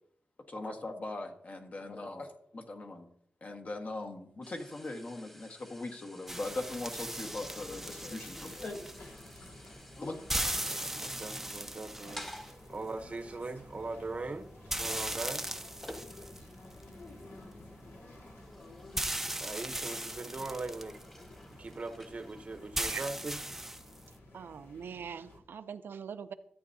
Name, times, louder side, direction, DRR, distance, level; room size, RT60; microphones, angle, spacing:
voice 1, 0.5-3.1 3.4-8.8 10.0-10.2, left 2 dB, 45° left, 1.5 m, -40 dB
sound 1, 4.4-16.6 17.0-17.4 17.9-22.9, equal, 10° left, 1.5 m, -53 dB
sound 2, 6.3-24.2, right 1 dB, 5° right, 0.6 m, -40 dB
sound 3, 7.1-25.4, left 2 dB, 75° left, 2.0 m, -53 dB
voice 2, 10.6-12.3 12.7-15.5 19.4-21.0 21.5-23.4, right 3 dB, 35° right, 0.9 m, -40 dB
voice 3, 24.3-26.3, right 7 dB, 80° right, 0.6 m, -42 dB
13.5 x 8.8 x 2.8 m
wide cardioid pair, 85°, 4 cm